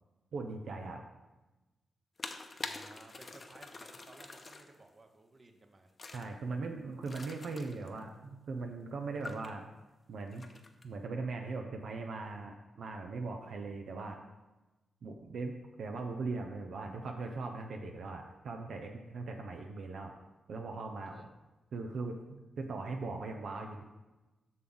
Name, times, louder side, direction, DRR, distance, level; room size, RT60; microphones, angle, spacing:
voice 1, 0.3-1.0 6.1-9.6 10.1-10.5 10.8-14.2 15.0-20.1 20.5-21.3 21.7-23.8, right 3 dB, 75° right, 3 dB, 0.7 m, -40 dB
sound 1, 2.2-4.8 6.0-6.3 7.0-8.0 9.2-9.5 10.3-10.8, left 3 dB, 45° left, 0.8 m, -45 dB
voice 2, 2.6-5.9 21.0-21.3, right 2 dB, 40° right, 5 dB, 1.0 m, -58 dB
7.4 x 6.1 x 3.9 m, 1.1 s
cardioid pair, 60°, 0 cm